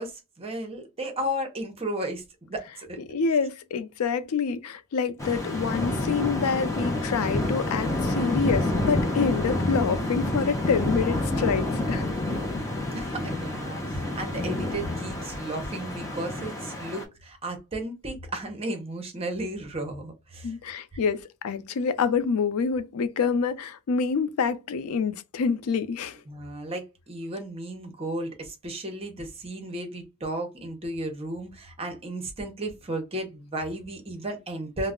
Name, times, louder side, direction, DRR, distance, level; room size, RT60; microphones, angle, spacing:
voice 1, 0.0-2.2 2.5-3.0 12.9-20.6 26.3-34.9, right 1 dB, 25° right, 0.6 m, -34 dB
voice 2, 3.1-12.1 12.9-13.0 20.4-26.2, left 5 dB, 70° left, 0.4 m, -27 dB
sound 1, 5.2-17.0, left 1 dB, 15° left, 0.6 m, -28 dB
2.3 x 2.0 x 3.4 m
head